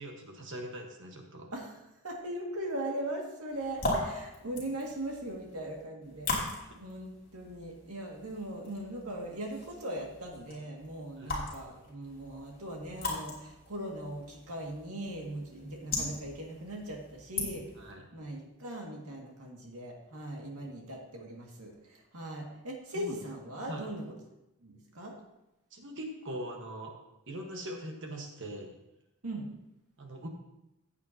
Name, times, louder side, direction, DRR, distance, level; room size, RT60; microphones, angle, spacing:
voice 1, 0.0-1.5 6.4-6.8 11.2-11.3 17.7-18.1 20.6-20.7 22.9-23.1 23.7-23.8 25.7-26.9 27.3-28.8 30.0-30.3, right 1 dB, 55° right, 2 dB, 1.4 m, -42 dB
voice 2, 2.0-17.6 18.1-24.0 24.6-25.1 29.2-29.5, right 1 dB, 75° right, 0 dB, 2.1 m, -40 dB
sound 1, 3.5-17.9, left 2 dB, 40° left, 2.9 m, -40 dB
14.5 x 8.3 x 2.8 m, 0.92 s
head